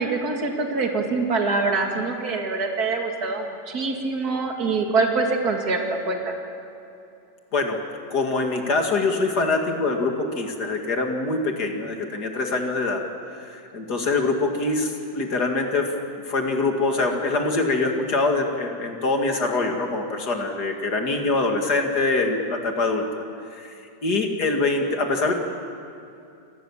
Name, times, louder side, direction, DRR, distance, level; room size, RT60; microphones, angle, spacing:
voice 1, 0.0-6.4, right 3 dB, 55° right, 2 dB, 2.7 m, -24 dB
voice 2, 8.1-13.0 13.4-15.9 16.3-23.2 23.5-23.8 24.0-25.3, left 3 dB, 60° left, 3 dB, 2.8 m, -24 dB
28.0 x 19.5 x 7.3 m, 2.7 s
omnidirectional pair, 1.9 m